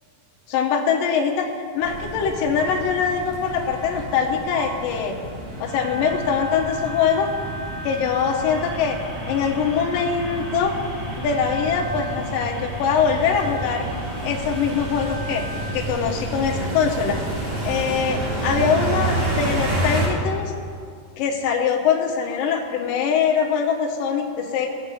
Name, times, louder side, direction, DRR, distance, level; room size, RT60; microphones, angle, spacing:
voice 1, 0.5-1.5 1.7-5.1 5.6-7.3 7.8-9.0 9.3-10.7 11.2-13.9 14.2-15.4 15.7-17.2 17.6-20.5 21.2-24.7, left 6 dB, 80° left, -1 dB, 2.6 m, -23 dB
sound 1, 1.8-20.1, right 1 dB, 65° right, 4.2 m, -30 dB
sound 2, 5.7-15.7, right 1 dB, 25° right, 3.9 m, -38 dB
19.5 x 7.3 x 4.1 m, 2.2 s
omnidirectional pair, 4.0 m